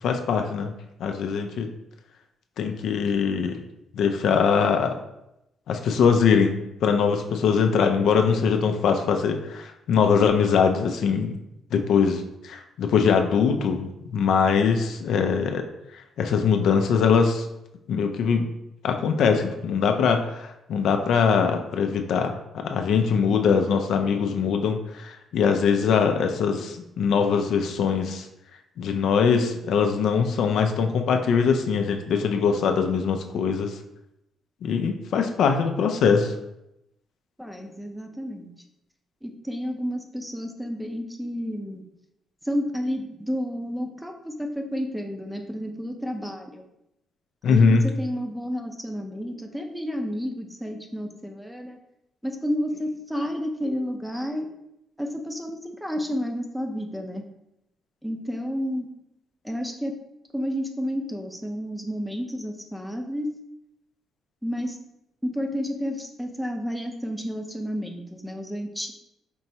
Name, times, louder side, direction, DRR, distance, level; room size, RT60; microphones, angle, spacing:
voice 1, 0.0-0.7 1.0-1.7 2.6-3.6 3.9-4.9 5.7-11.3 11.7-15.6 15.9-17.5 17.9-18.4 18.8-28.3 28.8-33.7 34.6-36.3 47.4-47.8, left 6 dB, 75° left, 5 dB, 0.4 m, -22 dB
voice 2, 37.4-38.5 39.2-41.9 42.4-46.6 47.5-51.8 52.2-54.5 55.0-57.2 58.0-58.9 59.4-59.9 60.3-63.3 64.4-64.8 65.2-68.9, equal, ahead, 3 dB, 0.5 m, -31 dB
4.4 x 2.9 x 2.7 m, 0.84 s
cardioid pair, 90°, 0 cm